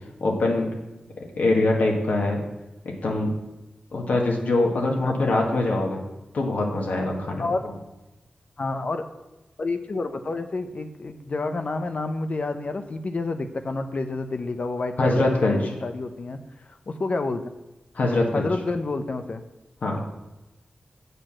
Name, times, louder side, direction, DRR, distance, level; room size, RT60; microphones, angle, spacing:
voice 1, 0.2-0.7 1.2-2.4 2.8-3.3 3.9-6.0 6.3-7.4 15.0-15.6 17.9-18.5 19.8-20.0, left 2 dB, 80° left, 0 dB, 1.8 m, -23 dB
voice 2, 5.0-5.4 7.4-7.6 8.6-9.1 9.6-17.5 18.3-19.4, left 3 dB, 55° left, 8 dB, 0.8 m, -29 dB
8.1 x 6.7 x 6.4 m, 1.0 s
wide cardioid pair, 75°, 3 cm